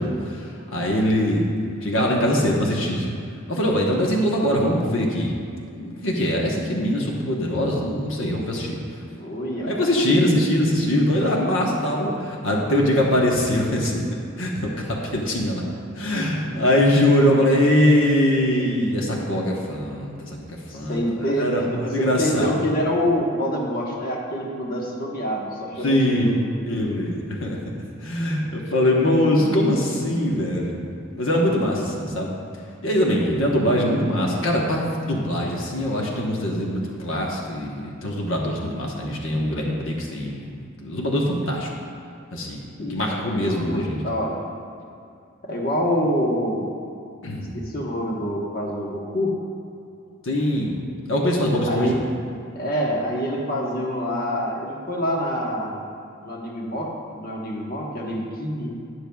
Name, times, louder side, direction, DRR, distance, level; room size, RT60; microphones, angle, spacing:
voice 1, 0.0-1.4 1.8-3.1 3.5-5.3 5.8-8.8 9.6-14.0 14.4-15.6 16.0-20.4 20.7-22.5 25.8-26.3 26.7-27.6 28.0-30.8 31.2-32.3 32.8-40.4 40.8-41.7 42.3-42.6 42.9-44.0 47.2-47.6 50.2-50.8 51.1-52.0, left 1 dB, 70° left, -2 dB, 1.1 m, -22 dB
voice 2, 9.2-9.8 20.7-26.4 42.8-44.4 45.4-46.7 47.5-49.3 51.7-52.0 52.5-55.8 56.2-58.7, equal, 50° left, -2 dB, 1.2 m, -26 dB
12.5 x 9.9 x 2.3 m, 2.5 s
head